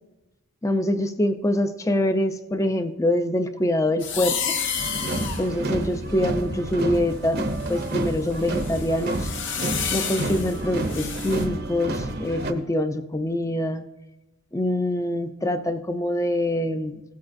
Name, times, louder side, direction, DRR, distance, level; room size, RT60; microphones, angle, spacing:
voice 1, 0.6-4.4 5.4-7.4 7.7-9.3 9.9-13.8 14.5-17.0, left 1 dB, 15° left, 9 dB, 0.5 m, -24 dB
sound 1, 4.0-6.9 7.5-11.4, left 7 dB, 55° left, 1.1 m, -31 dB
sound 2, 4.8-12.5, right 1 dB, 45° right, 0.8 m, -29 dB
16.5 x 8.4 x 2.6 m, 1.0 s
head